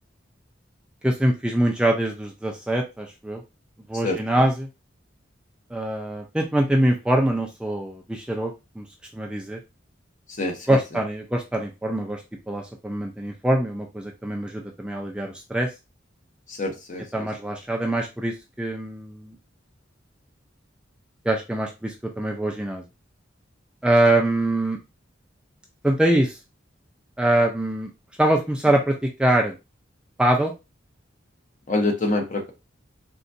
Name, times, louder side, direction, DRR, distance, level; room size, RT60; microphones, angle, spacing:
voice 1, 1.0-3.4 3.9-4.7 5.7-8.9 9.1-9.6 10.7-15.7 17.1-19.4 21.2-22.8 23.8-24.8 25.8-26.4 27.2-27.9 28.2-29.6 30.2-30.5, right 1 dB, 5° right, 0 dB, 0.3 m, -23 dB
voice 2, 4.0-4.4 10.3-10.8 16.5-17.3 31.7-32.5, left 2 dB, 40° left, 3 dB, 0.8 m, -26 dB
3.8 x 2.2 x 2.5 m, 0.26 s
head